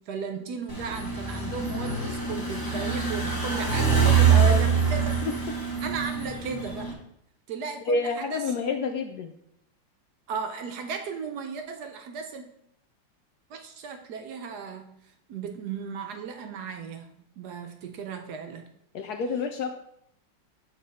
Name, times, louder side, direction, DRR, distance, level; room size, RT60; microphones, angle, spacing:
voice 1, 0.0-5.2 5.8-6.9 7.5-8.4 10.3-12.5 13.5-14.9 15.3-17.1 17.4-18.7, right 5 dB, 70° right, 5 dB, 1.1 m, -36 dB
sound 1, 0.7-6.9, right 6 dB, 15° left, 0.9 m, -24 dB
voice 2, 4.3-4.7 5.3-5.4 7.9-9.3 18.9-19.8, left 4 dB, 75° left, 6 dB, 0.9 m, -28 dB
7.3 x 3.9 x 4.1 m, 0.75 s
omnidirectional pair, 2.0 m